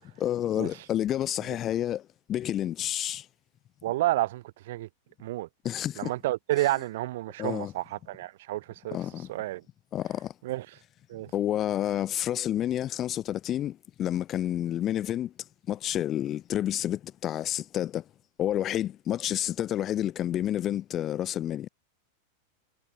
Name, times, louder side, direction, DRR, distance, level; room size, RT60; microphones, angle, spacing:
voice 1, 0.2-3.3 5.6-6.1 7.4-7.7 8.9-9.3 9.9-10.3 11.3-15.3 15.7-18.0 18.4-21.7, left 11 dB, 30° left, 0.5 m, -29 dB
voice 2, 3.8-4.9 5.2-5.5 6.0-9.0 9.3-9.6 10.4-10.7 11.1-11.3, right 16 dB, 55° right, 0.7 m, -30 dB
figure-of-eight pair, 90°, 0 cm